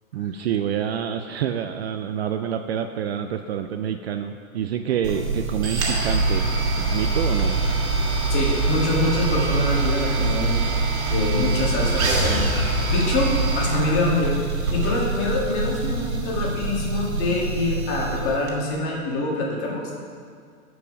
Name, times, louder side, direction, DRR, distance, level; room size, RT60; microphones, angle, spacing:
voice 1, 0.1-6.5 6.8-7.6, right 9 dB, 50° right, 7 dB, 0.4 m, -27 dB
sound 1, 5.0-18.5, right 3 dB, 70° right, 1.7 m, -24 dB
voice 2, 8.3-10.6 11.1-12.4 12.9-14.3 14.7-19.8, left 2 dB, 30° left, -3 dB, 1.9 m, -25 dB
9.6 x 4.9 x 5.1 m, 2.1 s
hypercardioid pair, 125°, 43 cm